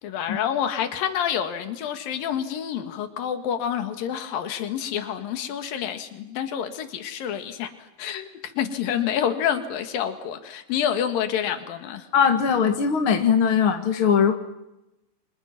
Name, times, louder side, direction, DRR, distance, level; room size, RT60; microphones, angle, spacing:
voice 1, 0.0-7.7 8.0-8.3 8.6-12.1, left 9 dB, 70° left, 7 dB, 3.5 m, -28 dB
voice 2, 12.1-14.3, left 7 dB, 50° left, 5 dB, 1.8 m, -20 dB
30.0 x 26.0 x 6.0 m, 0.90 s
omnidirectional pair, 4.2 m